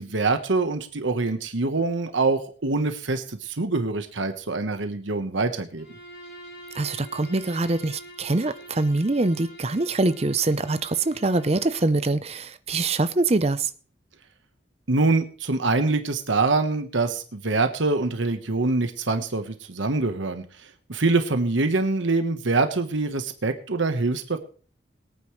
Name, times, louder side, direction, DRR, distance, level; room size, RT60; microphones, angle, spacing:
voice 1, 0.0-5.8 14.9-20.4 20.9-24.4, right 3 dB, 80° right, 1.2 m, -24 dB
Bowed string instrument, 5.8-12.0, right 1 dB, 55° left, 7.2 m, -45 dB
voice 2, 6.7-13.7, right 2 dB, 35° right, 0.6 m, -24 dB
22.0 x 9.2 x 3.2 m
head